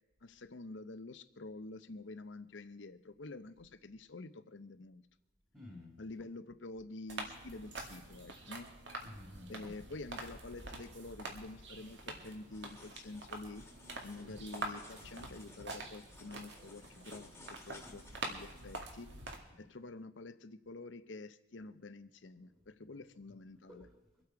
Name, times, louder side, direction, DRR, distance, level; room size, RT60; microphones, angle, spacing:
voice 1, 0.2-5.0 6.0-8.7 9.5-13.7 14.0-17.3 17.7-19.1 19.6-23.9, left 2 dB, 70° left, 13 dB, 0.8 m, -48 dB
voice 2, 5.5-6.0 9.0-10.0 14.2-14.4 19.6-19.7 23.5-24.2, left 1 dB, 10° right, -1 dB, 2.0 m, -53 dB
sound 1, 7.1-19.4, right 2 dB, 65° right, 2.0 m, -46 dB
sound 2, 12.5-18.8, left 2 dB, 10° left, 1.6 m, -58 dB
24.0 x 8.4 x 4.7 m, 1.0 s
head